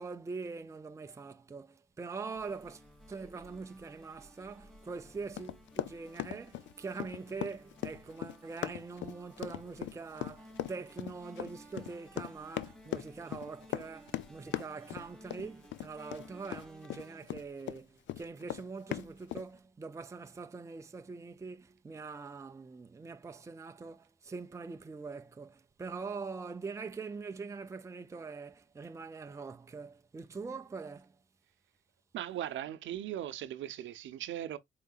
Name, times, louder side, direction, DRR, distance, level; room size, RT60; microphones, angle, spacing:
voice 1, 0.0-2.8 3.1-31.2, right 4 dB, 15° right, 0.5 m, -43 dB
sound 1, 2.3-16.5, equal, 45° left, 2.2 m, -66 dB
sound 2, 2.4-17.2, equal, 5° left, 1.0 m, -57 dB
Run, 5.4-17.8 18.1-19.5, left 13 dB, 70° left, 0.4 m, -39 dB
voice 2, 32.1-34.6, right 11 dB, 75° right, 0.7 m, -38 dB
4.7 x 3.8 x 2.3 m
cardioid pair, 90°, 20 cm